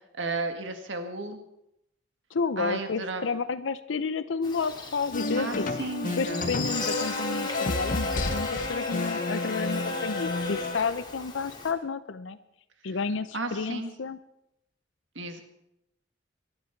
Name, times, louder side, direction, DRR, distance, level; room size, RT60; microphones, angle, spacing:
voice 1, 0.2-1.4 2.6-3.2 5.4-6.6 13.3-13.9 15.2-15.4, right 3 dB, 75° right, 6 dB, 1.8 m, -33 dB
voice 2, 2.3-5.7 6.2-12.4 12.8-14.2, left 4 dB, 75° left, 12 dB, 0.6 m, -31 dB
Buzz, 4.4-11.7, left 2 dB, 25° left, 2.4 m, -36 dB
sound 1, 5.1-10.8, left 2 dB, 45° left, 0.9 m, -31 dB
23.0 x 11.5 x 4.5 m, 0.83 s
head